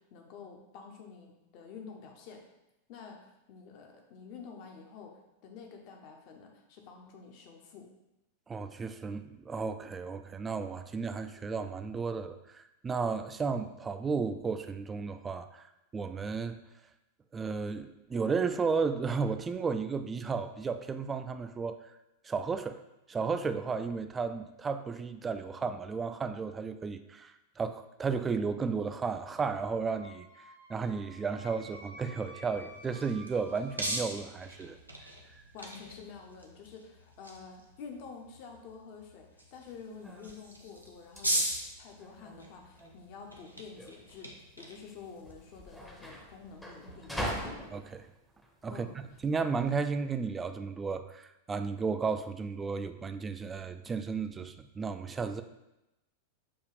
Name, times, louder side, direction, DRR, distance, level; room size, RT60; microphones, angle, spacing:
voice 1, 0.0-2.4 2.9-7.9 35.5-41.5 41.8-44.3 44.6-47.4 48.7-49.0, left 5 dB, 45° left, 3 dB, 0.7 m, -49 dB
voice 2, 8.5-15.7 15.9-16.5 17.3-21.8 22.2-22.8 23.1-30.3 30.7-34.8 47.7-48.1 48.6-48.9 49.2-55.4, right 5 dB, 15° right, 9 dB, 0.3 m, -33 dB
Wind instrument woodwind instrument, 29.9-34.0, equal, 80° left, 1.3 m, -52 dB
sound 1, 32.5-46.9, right 1 dB, 90° right, 0.6 m, -41 dB
sound 2, 39.7-49.7, equal, 5° left, 0.7 m, -43 dB
6.9 x 2.3 x 3.3 m, 0.93 s
figure-of-eight pair, 90°, 0 cm